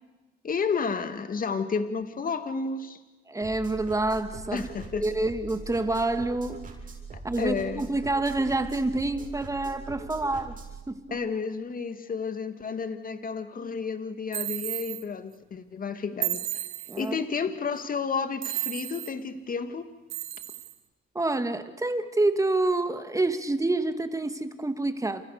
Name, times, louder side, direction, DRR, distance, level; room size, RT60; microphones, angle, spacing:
voice 1, 0.4-3.0 4.5-5.0 7.4-7.8 11.1-16.6 17.0-19.9, left 5 dB, 45° left, 9 dB, 2.5 m, -31 dB
voice 2, 3.3-4.7 5.0-6.6 7.2-10.6 10.9-11.2 16.9-17.2 21.1-25.2, right 2 dB, 15° right, 9 dB, 2.4 m, -27 dB
sound 1, 3.4-10.8, right 3 dB, 40° right, 7.9 m, -42 dB
sound 2, 14.3-15.0 16.2-17.1 18.4-19.1 20.1-20.7, right 15 dB, 85° right, 1.8 m, -33 dB
30.0 x 28.5 x 6.9 m, 1.1 s
cardioid pair, 90°, 20 cm